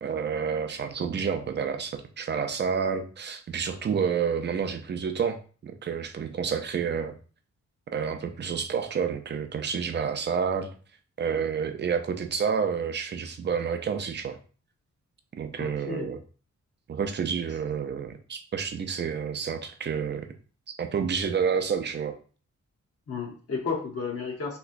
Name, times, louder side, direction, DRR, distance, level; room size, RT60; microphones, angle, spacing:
voice 1, 0.0-7.1 7.9-10.7 11.2-14.4 15.4-16.2 16.9-20.3 20.8-22.1, right 6 dB, 40° right, 8 dB, 0.4 m, -29 dB
voice 2, 15.6-16.2 23.1-24.6, left 5 dB, 55° left, 0 dB, 0.8 m, -32 dB
3.4 x 3.0 x 2.4 m, 0.39 s
wide cardioid pair, 170°, 29 cm